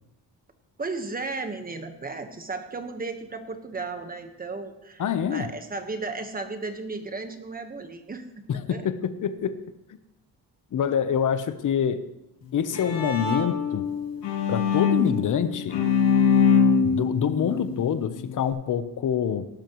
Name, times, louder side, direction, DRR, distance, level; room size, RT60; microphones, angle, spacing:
voice 1, 0.8-8.3 8.7-8.9, right 3 dB, 20° right, 7 dB, 1.3 m, -34 dB
voice 2, 5.0-5.5 8.5-9.6 10.7-12.0 12.5-13.9 14.5-15.8 16.8-19.5, left 8 dB, 50° left, 11 dB, 0.9 m, -26 dB
Bowed string instrument, 12.4-18.5, left 6 dB, 90° left, 2.6 m, -24 dB
18.0 x 12.0 x 3.1 m, 0.92 s
cardioid pair, 140°, 39 cm